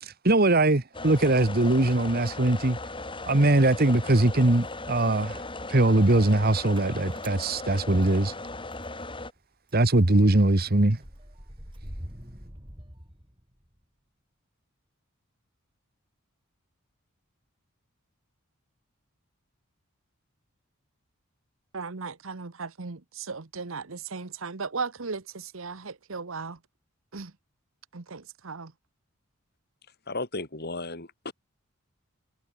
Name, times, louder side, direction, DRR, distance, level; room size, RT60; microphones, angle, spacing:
voice 1, 0.0-2.8 3.2-5.4 5.7-8.3 9.7-11.0, right 2 dB, 45° right, 1.4 m, -21 dB
sound 1, 0.9-9.3, left 2 dB, 25° left, 6.3 m, -37 dB
Motor vehicle (road) / Engine starting, 2.9-4.1 4.4-9.0 9.4-9.5 9.7-13.8, equal, 25° right, 7.2 m, -46 dB
voice 2, 21.7-26.6 27.1-27.3 27.9-28.7, right 4 dB, 65° right, 1.1 m, -36 dB
voice 3, 30.1-31.3, left 2 dB, 45° left, 4.6 m, -34 dB
head